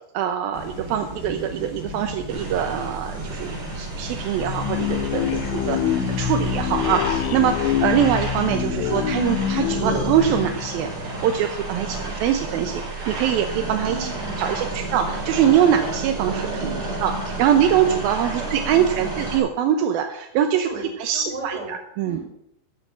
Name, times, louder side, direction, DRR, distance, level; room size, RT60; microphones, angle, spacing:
voice 1, 0.1-14.1 14.4-16.5 17.0-20.7 21.0-22.2, right 9 dB, 75° right, 6 dB, 2.3 m, -23 dB
sound 1, 0.5-7.8, right 1 dB, 5° right, 2.3 m, -38 dB
sound 2, 2.3-19.4, right 2 dB, 40° right, 4.7 m, -31 dB
sound 3, 4.4-11.6, left 10 dB, 85° left, 3.3 m, -26 dB
voice 2, 13.8-14.9 16.6-17.3 18.2-19.2 20.6-20.9 21.1-21.8 22.0-22.2, right 2 dB, 20° right, -4 dB, 7.4 m, -37 dB
14.0 x 7.7 x 7.4 m, 0.80 s
omnidirectional pair, 5.1 m